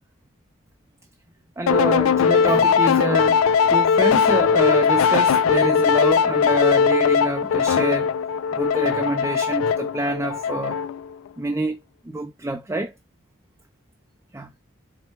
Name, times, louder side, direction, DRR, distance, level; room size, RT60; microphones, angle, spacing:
voice 1, 1.6-3.4 3.7-8.1 8.5-10.8 11.4-11.8 12.1-12.9 14.3-14.5, right 2 dB, 15° right, 0.4 m, -26 dB
sound 1, 1.7-11.1, left 6 dB, 85° left, 0.3 m, -19 dB
4.4 x 2.2 x 4.4 m
head